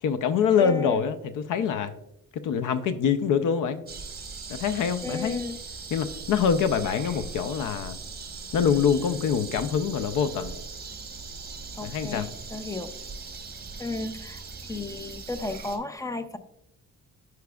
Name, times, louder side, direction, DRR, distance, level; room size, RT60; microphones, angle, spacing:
voice 1, 0.0-1.9 2.3-3.8 4.5-5.4 5.9-8.0 8.5-10.5 11.8-12.3, left 7 dB, 80° left, 11 dB, 0.6 m, -25 dB
voice 2, 0.6-1.0 5.0-5.6 11.8-12.9 13.8-16.4, left 2 dB, 10° left, 10 dB, 0.4 m, -34 dB
sound 1, 3.9-15.8, right 4 dB, 30° right, 1.1 m, -40 dB
13.0 x 4.7 x 2.3 m, 0.84 s
cardioid pair, 140°, 30 cm